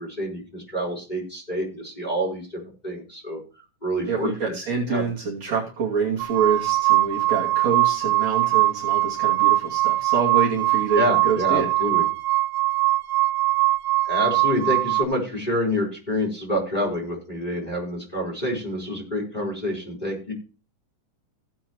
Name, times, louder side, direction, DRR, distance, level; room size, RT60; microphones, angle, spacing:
voice 1, 0.0-3.4 3.8-4.5 4.9-5.1 10.9-12.0 14.0-20.3, equal, 10° left, -1 dB, 4.0 m, -27 dB
voice 2, 4.1-11.9, right 5 dB, 55° right, -4 dB, 3.7 m, -26 dB
sound 1, 6.2-15.0, right 18 dB, 75° right, 2.2 m, -21 dB
17.0 x 7.8 x 3.1 m, 0.33 s
omnidirectional pair, 3.8 m